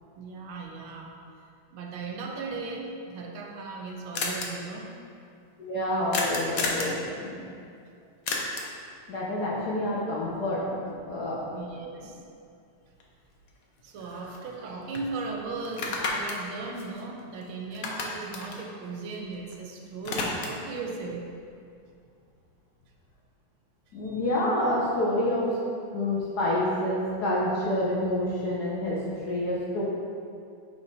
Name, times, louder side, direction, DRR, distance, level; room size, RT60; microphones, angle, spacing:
voice 1, 0.1-1.1 1.7-4.9 11.5-12.2 13.8-21.2 24.0-24.2, right 3 dB, 75° right, 0 dB, 1.4 m, -37 dB
sound 1, 3.2-3.3 3.5-3.6 3.8-3.9 4.1-4.5 6.1-7.0 8.3-8.8 13.0-13.1 13.5-14.6 14.9-15.1 15.6-17.4 17.7-19.5 19.8-20.7, left 3 dB, 75° left, 0.8 m, -32 dB
voice 2, 5.6-7.4 9.1-11.4 14.2-14.4 23.9-25.5 25.9-29.0 29.3-29.8, left 1 dB, 60° left, -5 dB, 1.1 m, -28 dB
5.4 x 4.8 x 4.0 m, 2.4 s
omnidirectional pair, 2.4 m